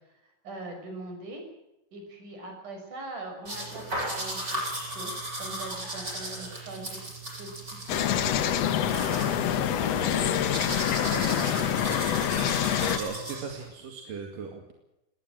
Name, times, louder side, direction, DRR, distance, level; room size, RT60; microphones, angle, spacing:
voice 1, 0.4-1.4 1.9-7.5 7.8-8.4 8.8-10.6 10.9-12.3, right 2 dB, 70° right, 4 dB, 7.7 m, -42 dB
sound 1, 3.5-13.7, right 1 dB, 30° right, 8.6 m, -36 dB
sound 2, 7.9-13.0, left 10 dB, 60° left, 2.1 m, -26 dB
voice 2, 13.0-14.7, right 5 dB, 90° right, 4 dB, 3.9 m, -38 dB
20.0 x 19.5 x 7.7 m, 0.91 s
omnidirectional pair, 3.7 m